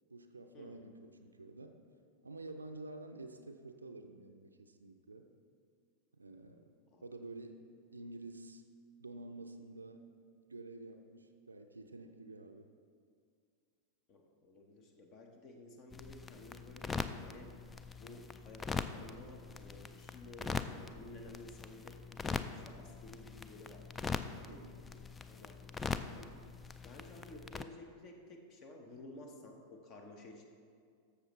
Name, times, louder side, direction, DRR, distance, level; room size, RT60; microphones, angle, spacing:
voice 1, 0.1-1.8 2.2-5.3 6.1-6.7 7.0-7.6 7.9-8.6 9.0-10.0 10.5-12.7 24.5-24.8, right 2 dB, 80° right, 6 dB, 0.4 m, -49 dB
voice 2, 14.1-17.5 17.9-26.3 26.8-30.5, left 1 dB, 35° left, 3 dB, 1.1 m, -54 dB
sound 1, 15.9-27.6, left 5 dB, 15° left, 0.3 m, -42 dB
13.0 x 6.7 x 3.1 m, 2.2 s
figure-of-eight pair, 90°, 0 cm